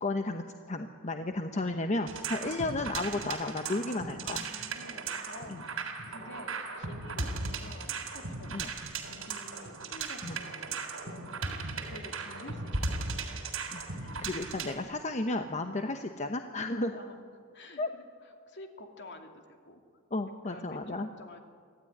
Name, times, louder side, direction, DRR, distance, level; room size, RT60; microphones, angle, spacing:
voice 1, 0.0-4.5 5.5-5.6 8.5-8.7 10.2-10.4 13.7-16.9 17.8-17.9 20.1-21.1, left 2 dB, 35° left, 6 dB, 1.0 m, -33 dB
sound 1, 2.1-14.8, right 4 dB, 75° right, 3.5 m, -37 dB
voice 2, 4.4-13.3 16.7-17.2 17.5-19.8 20.4-21.4, left 1 dB, 60° left, 4 dB, 2.7 m, -50 dB
25.0 x 15.5 x 9.9 m, 2.1 s
head